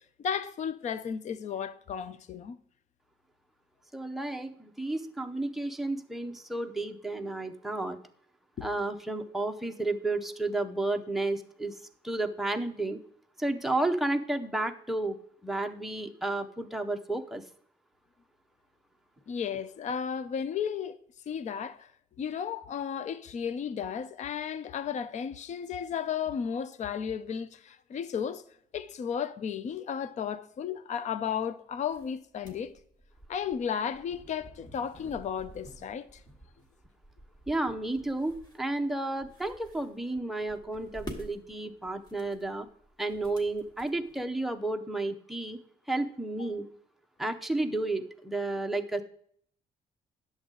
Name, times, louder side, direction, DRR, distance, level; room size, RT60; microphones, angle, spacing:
voice 1, 0.2-2.6 8.6-8.7 19.3-21.0 21.3-21.9 22.2-28.4 28.7-32.7 33.3-36.2 46.4-46.5, left 7 dB, 45° left, 0.5 m, -34 dB
voice 2, 3.9-8.0 8.6-11.8 12.0-13.0 13.4-15.2 15.4-17.4 37.5-42.7 43.0-45.6 45.9-46.6 47.2-49.0, right 2 dB, ahead, 0.7 m, -32 dB
sound 1, 31.7-44.5, equal, 25° left, 1.6 m, -50 dB
10.5 x 7.2 x 3.8 m
cardioid pair, 150°, 17 cm